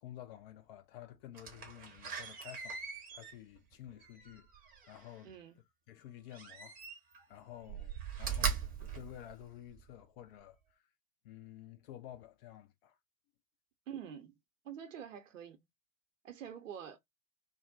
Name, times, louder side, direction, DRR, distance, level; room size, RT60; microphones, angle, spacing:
voice 1, 0.0-2.8 3.1-4.5 4.9-5.3 5.9-6.8 7.3-10.8 11.2-12.9, left 12 dB, 45° left, 0.6 m, -51 dB
Slam, 1.3-5.2 6.3-7.2 7.6-9.9 10.4-10.5, right 7 dB, 20° right, 0.8 m, -40 dB
voice 2, 5.2-5.6 13.9-14.3 14.6-15.6 16.2-17.0, right 8 dB, 65° right, 0.8 m, -46 dB
2.6 x 2.0 x 2.6 m
figure-of-eight pair, 85°, 42 cm